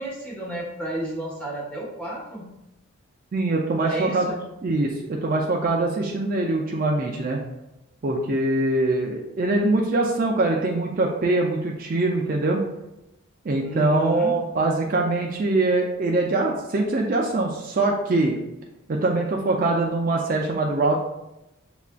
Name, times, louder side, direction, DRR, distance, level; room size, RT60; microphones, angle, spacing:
voice 1, 0.0-2.4 3.8-4.4 13.6-14.3, right 1 dB, 5° left, -6 dB, 1.1 m, -32 dB
voice 2, 3.3-4.3 4.6-7.4 8.0-12.6 13.5-18.3 18.9-20.9, right 2 dB, 40° right, -1 dB, 0.4 m, -23 dB
6.8 x 2.4 x 2.2 m, 0.91 s
head